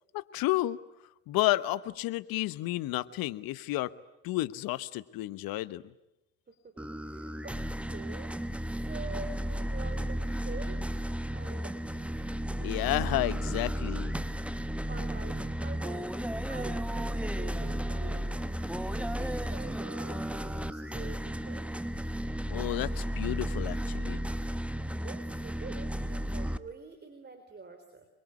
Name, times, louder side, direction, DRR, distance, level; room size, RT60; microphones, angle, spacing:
voice 1, 0.1-0.8 1.3-3.9 4.2-5.8 12.6-14.2 22.5-24.2, left 17 dB, 55° left, 16 dB, 1.2 m, -31 dB
voice 2, 6.5-8.3 8.9-11.0 11.3-12.0 14.9-16.1 16.5-18.4 18.9-21.7 25.0-28.1, right 4 dB, 25° right, 7 dB, 3.8 m, -46 dB
sound 1, 6.8-26.6, equal, 5° right, 1.1 m, -34 dB
28.0 x 22.5 x 9.5 m, 0.92 s
hypercardioid pair, 65°, 41 cm